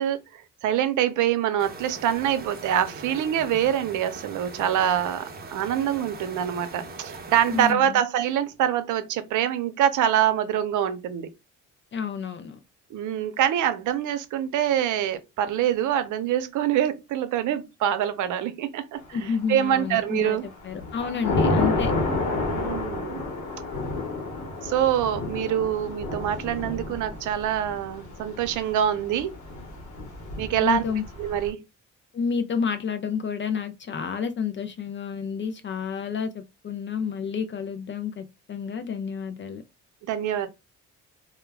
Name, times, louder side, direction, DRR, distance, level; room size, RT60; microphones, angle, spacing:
voice 1, 0.0-11.3 12.9-20.5 22.5-23.3 24.6-29.3 30.4-30.8 31.2-31.6 40.0-40.5, right 10 dB, 80° right, 0.6 m, -25 dB
sound 1, 1.6-7.7, right 3 dB, 30° right, 0.7 m, -41 dB
voice 2, 7.5-8.0 11.9-12.6 19.1-21.9 30.6-31.0 32.1-39.6, left 6 dB, 40° left, 0.4 m, -30 dB
Thunder / Rain, 19.4-19.9 20.4-31.5, left 2 dB, 70° left, 1.0 m, -30 dB
2.2 x 2.1 x 3.3 m
cardioid pair, 90°, 30 cm